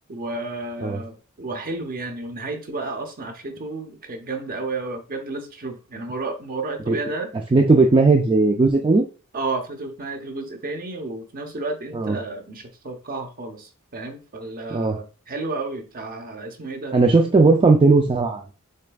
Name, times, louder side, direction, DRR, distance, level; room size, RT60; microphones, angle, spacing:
voice 1, 0.1-7.3 9.3-17.0, right 3 dB, 40° right, 5 dB, 0.9 m, -32 dB
voice 2, 7.5-9.1 11.9-12.2 14.7-15.0 16.9-18.4, right 3 dB, 25° right, 3 dB, 0.4 m, -17 dB
6.4 x 3.4 x 2.3 m, 0.34 s
head